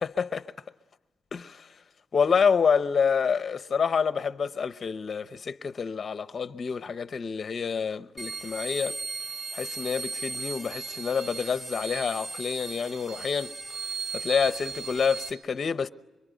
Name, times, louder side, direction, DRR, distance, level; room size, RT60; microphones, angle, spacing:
voice 1, 1.3-1.6 2.1-9.0 9.5-13.5 14.1-15.9, left 6 dB, 35° left, 0.8 m, -27 dB
sound 1, 8.2-15.3, right 4 dB, 20° right, 3.9 m, -36 dB
26.5 x 24.5 x 9.3 m
cardioid pair, 155°, 0 cm